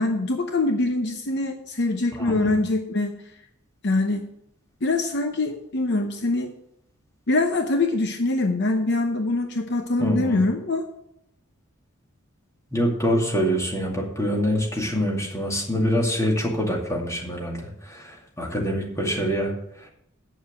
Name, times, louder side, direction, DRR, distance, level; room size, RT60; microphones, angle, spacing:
voice 1, 0.0-3.2 3.8-4.3 4.8-6.5 7.3-10.9, left 2 dB, 55° left, 5 dB, 0.8 m, -24 dB
voice 2, 2.2-2.6 10.0-10.4 12.7-19.9, equal, 15° left, -1 dB, 2.3 m, -25 dB
8.6 x 7.1 x 6.6 m, 0.77 s
head